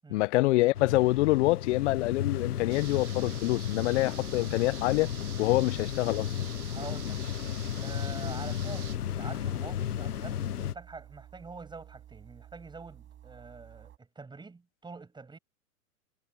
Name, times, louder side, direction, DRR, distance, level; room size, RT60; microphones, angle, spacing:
voice 1, 0.1-5.1 5.4-6.3, left 19 dB, 50° left, 1.3 m, -26 dB
sound 1, 0.7-10.7, left 10 dB, 85° left, 1.2 m, -34 dB
sound 2, 2.7-9.0, right 12 dB, 70° right, 2.7 m, -47 dB
sound 3, 4.2-14.0, right 11 dB, 25° right, 7.5 m, -53 dB
voice 2, 6.7-7.2 7.8-15.4, right 4 dB, 10° right, 6.9 m, -46 dB
hypercardioid pair, 120°, 45 cm